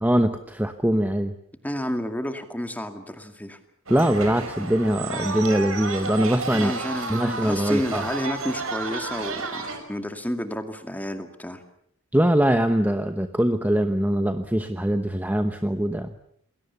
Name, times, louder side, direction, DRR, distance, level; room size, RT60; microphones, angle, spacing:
voice 1, 0.0-1.3 3.9-6.7 7.1-8.0 12.1-16.1, right 1 dB, 10° right, 8 dB, 1.0 m, -22 dB
voice 2, 1.6-3.6 6.5-11.6, equal, 10° left, 7 dB, 2.3 m, -31 dB
sound 1, 3.9-9.8, right 4 dB, 75° right, 5.5 m, -32 dB
28.0 x 21.5 x 7.1 m, 0.69 s
head